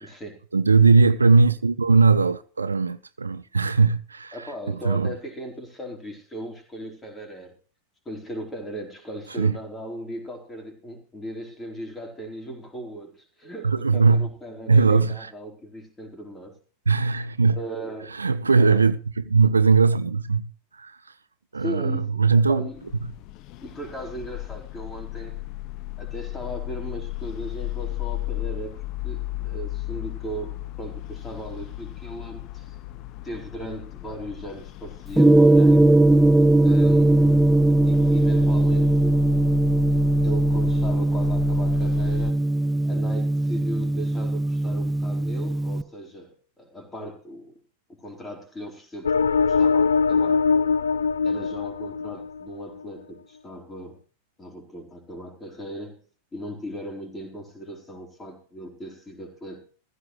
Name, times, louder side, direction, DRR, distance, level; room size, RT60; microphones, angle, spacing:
voice 1, 0.0-0.4 4.3-7.5 8.0-16.6 17.5-18.2 18.6-18.8 21.5-22.0 22.4-22.8 23.6-25.4 26.0-32.8 33.2-35.9 36.6-37.6 37.8-39.3 40.2-42.4 42.8-47.6 47.9-49.2 49.5-50.4 51.2-54.0 54.4-56.0 56.3-59.6, equal, 15° left, 4.5 m, -37 dB
voice 2, 0.5-5.1 9.4-9.6 13.6-14.3 14.7-15.3 16.9-17.6 18.1-21.0 21.5-22.7, right 4 dB, 75° right, 0.7 m, -20 dB
sound 1, 22.7-42.3, left 19 dB, 40° left, 1.0 m, -34 dB
Gong, 35.2-45.8, right 2 dB, ahead, 0.5 m, -19 dB
sound 2, 49.0-52.6, left 5 dB, 70° left, 0.6 m, -22 dB
15.5 x 14.5 x 3.2 m
figure-of-eight pair, 90°, 0 cm